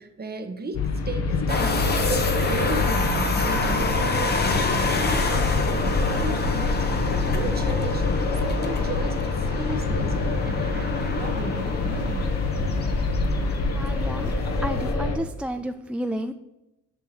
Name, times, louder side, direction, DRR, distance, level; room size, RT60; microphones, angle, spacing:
voice 1, 0.0-8.1 8.3-12.3, right 3 dB, 30° right, 7 dB, 1.1 m, -35 dB
sound 1, 0.7-15.2, left 3 dB, 55° left, 1.2 m, -25 dB
sound 2, 1.5-14.9, left 3 dB, 35° left, 1.1 m, -29 dB
Rain, 3.4-6.9 7.5-7.6 8.0-14.6, left 1 dB, 75° left, 1.6 m, -39 dB
voice 2, 13.8-14.3 14.6-16.3, right 1 dB, 5° right, 8 dB, 0.3 m, -31 dB
6.8 x 4.6 x 5.8 m, 0.97 s
cardioid pair, 90°, 30 cm